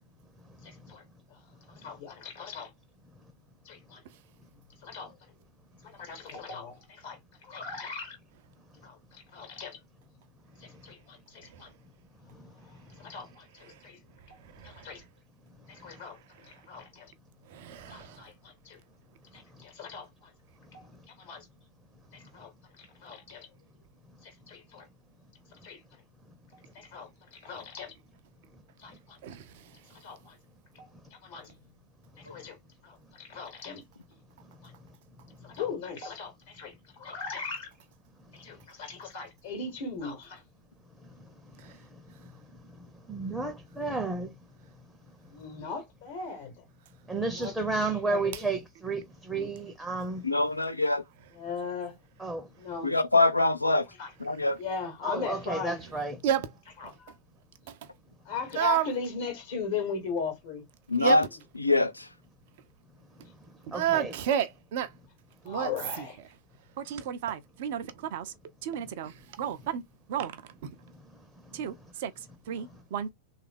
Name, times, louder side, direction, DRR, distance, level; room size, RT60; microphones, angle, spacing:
voice 1, 0.6-1.0 1.3-1.4 1.7-2.7 3.6-4.0 4.8-5.2 5.9-8.2 8.8-9.8 10.6-11.7 13.0-14.0 14.3-14.4 14.6-15.0 15.7-17.1 17.9-18.8 19.3-20.3 20.7-20.9 21.2-21.4 22.1-22.5 22.8-23.5 24.2-24.9 25.6-25.8 26.7-27.9 28.8-29.2 29.9-30.4 30.7-30.9 31.2-31.5 32.2-32.6 32.8-33.8 34.6-34.7 35.4-37.7 38.3-40.4 45.3-46.6 47.4-47.5 48.0-48.4 49.3-49.5 51.4-51.9 52.6-52.9 54.0-54.1 54.6-55.8 56.8-56.9 58.2-60.6 65.5-66.2 68.7-68.8 72.6-72.7, left 5 dB, 55° left, 1.1 m, -38 dB
voice 2, 14.6-14.9 17.5-18.2 29.2-29.4 56.2-56.5 58.6-58.9 61.0-61.2 63.7-64.9 65.5-65.7 66.0-66.1 66.8-68.3 68.6-69.8 70.1-70.4 70.6-70.7 71.5-72.1 72.5-73.1, right 10 dB, 50° right, 0.4 m, -31 dB
voice 3, 43.1-44.3 47.1-50.2 52.2-52.5 55.0-56.2 63.7-64.1, right 3 dB, 5° right, 0.6 m, -32 dB
voice 4, 50.2-51.0 52.8-53.9 54.2-54.6 60.9-61.2 61.6-62.0, left 2 dB, 85° left, 0.5 m, -24 dB
3.3 x 2.4 x 3.3 m
figure-of-eight pair, 90°, 0 cm